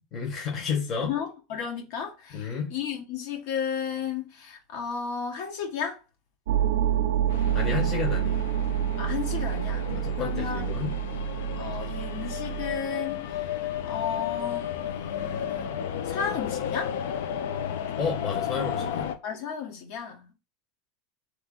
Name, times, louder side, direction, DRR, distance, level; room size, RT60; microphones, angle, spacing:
voice 1, 0.1-1.1 2.3-2.7 7.5-8.4 9.9-10.9 18.0-19.2, left 5 dB, 20° left, 1.1 m, -31 dB
voice 2, 1.0-6.0 9.0-9.9 10.2-10.7 11.6-15.7 16.0-16.9 19.2-20.3, left 7 dB, 50° left, 1.1 m, -34 dB
sound 1, 6.5-12.8, right 10 dB, 85° right, 0.5 m, -28 dB
sound 2, 7.3-19.2, left 9 dB, 90° left, 0.7 m, -33 dB
3.8 x 3.1 x 3.8 m
supercardioid pair, 175°, 0 cm